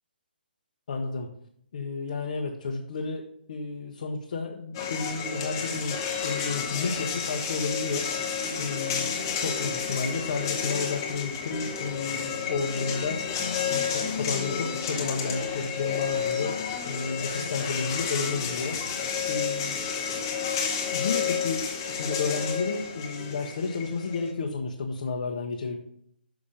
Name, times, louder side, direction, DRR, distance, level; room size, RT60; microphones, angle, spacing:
voice 1, 0.9-1.3 1.7-8.1 8.6-13.2 13.7-16.5 16.8-18.8 19.3-19.8 20.9-25.8, left 4 dB, 45° left, 1 dB, 0.9 m, -32 dB
sound 1, 4.7-24.3, left 6 dB, 25° left, 0.9 m, -31 dB
5.9 x 5.7 x 5.1 m, 0.68 s
hypercardioid pair, 170°, 6 cm